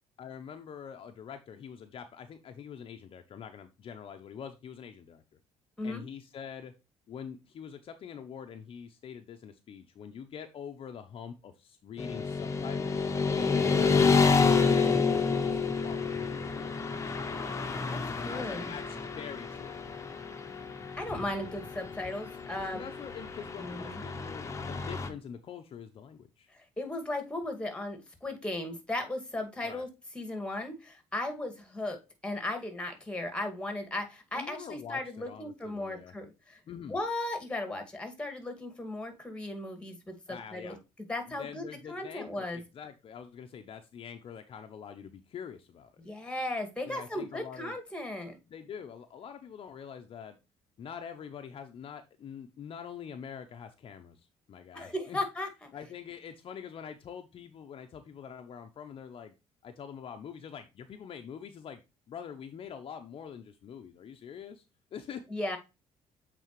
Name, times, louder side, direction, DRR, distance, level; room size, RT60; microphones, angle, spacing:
voice 1, 0.2-5.2 5.8-6.7 7.1-13.1 13.7-17.3 18.2-19.8 22.7-26.5 29.6-29.8 34.3-36.1 36.7-37.0 40.3-40.8 41.3-45.9 46.8-47.8 48.5-50.4 50.8-55.2 55.7-59.3 59.6-61.8 62.1-64.6 64.9-65.2, left 7 dB, 50° left, 6 dB, 0.8 m, -44 dB
Motorcycle / Traffic noise roadway noise, 12.0-25.1, left 4 dB, 25° left, 1.0 m, -29 dB
voice 2, 17.9-18.7 20.9-22.8 23.6-24.0 26.5-29.9 30.1-36.6 36.9-40.8 41.1-42.6 46.0-48.4 54.7-55.7 65.3-65.6, left 1 dB, 10° left, 6 dB, 2.1 m, -36 dB
7.9 x 4.1 x 3.1 m, 0.26 s
cardioid pair, 100°, 12 cm